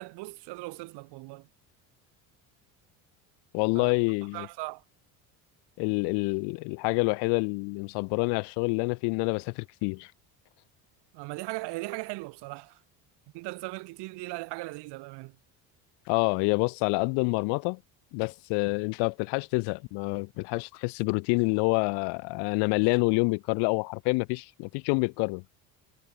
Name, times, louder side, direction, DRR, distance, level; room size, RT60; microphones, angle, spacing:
voice 1, 0.0-1.5 3.8-3.9 4.3-4.8 11.1-12.8 13.3-15.4, right 23 dB, 70° right, 2.0 m, -38 dB
voice 2, 3.5-4.5 5.8-10.1 16.1-17.8 18.1-25.4, left 32 dB, 75° left, 0.7 m, -27 dB
supercardioid pair, 80°, 42 cm